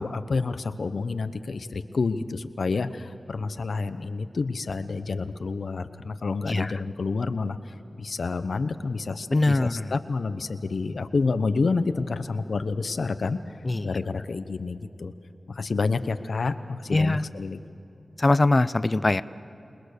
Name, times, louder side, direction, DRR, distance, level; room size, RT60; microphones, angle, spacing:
voice 1, 0.0-13.6 13.8-15.1 15.5-17.6, left 4 dB, 75° left, 11 dB, 0.9 m, -29 dB
voice 2, 9.3-9.7 13.7-13.8 16.9-17.2 18.2-19.2, left 2 dB, 35° left, 15 dB, 0.6 m, -21 dB
28.0 x 20.5 x 6.7 m, 2.9 s
wide cardioid pair, 75°, 0 cm